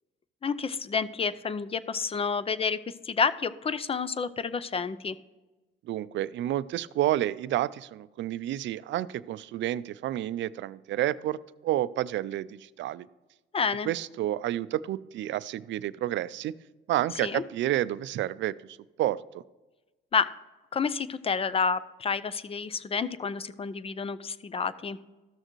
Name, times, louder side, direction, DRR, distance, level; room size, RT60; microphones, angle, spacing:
voice 1, 0.4-2.8 3.0-5.2 13.5-13.9 17.2-17.4 20.1-20.3 20.7-25.0, left 5 dB, 30° left, 15 dB, 0.5 m, -29 dB
voice 2, 5.9-13.1 13.9-16.5 16.9-19.2, right 13 dB, 70° right, 18 dB, 0.4 m, -30 dB
13.5 x 6.5 x 3.1 m, 1.1 s
cardioid pair, 90°, 20 cm